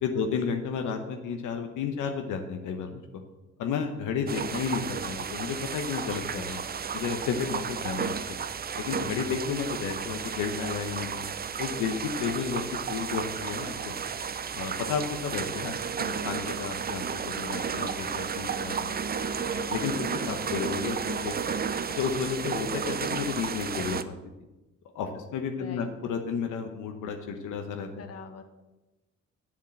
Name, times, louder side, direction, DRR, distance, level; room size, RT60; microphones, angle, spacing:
voice 1, 0.0-3.0 3.6-6.6 6.9-8.1 8.8-11.2 11.6-12.6 12.9-13.9 14.5-19.0 19.5-21.6 21.9-24.2 24.9-27.9, left 6 dB, 85° left, 5 dB, 1.0 m, -32 dB
sound 1, 4.3-24.0, right 6 dB, 30° right, 0.6 m, -33 dB
voice 2, 7.4-8.1 12.2-12.7 20.2-20.4 25.1-25.2 25.6-25.9 28.0-28.4, left 6 dB, 55° left, 7 dB, 1.3 m, -46 dB
7.4 x 7.4 x 7.6 m, 1.1 s
cardioid pair, 90°, 30 cm